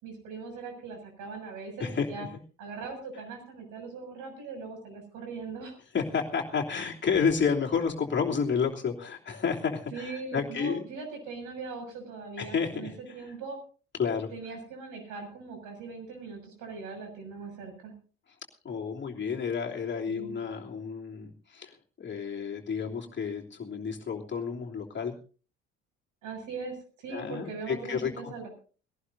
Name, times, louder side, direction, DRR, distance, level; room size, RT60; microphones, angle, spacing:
voice 1, 0.0-2.3 2.6-5.8 9.9-13.6 14.3-18.0 20.1-20.3 26.2-28.5, right 4 dB, 60° right, 5 dB, 6.9 m, -40 dB
voice 2, 1.8-2.3 5.9-10.8 12.4-12.9 14.0-14.3 18.6-25.2 27.1-28.3, left 6 dB, 30° left, -1 dB, 3.0 m, -30 dB
21.5 x 18.0 x 2.7 m, 0.38 s
figure-of-eight pair, 55°, 34 cm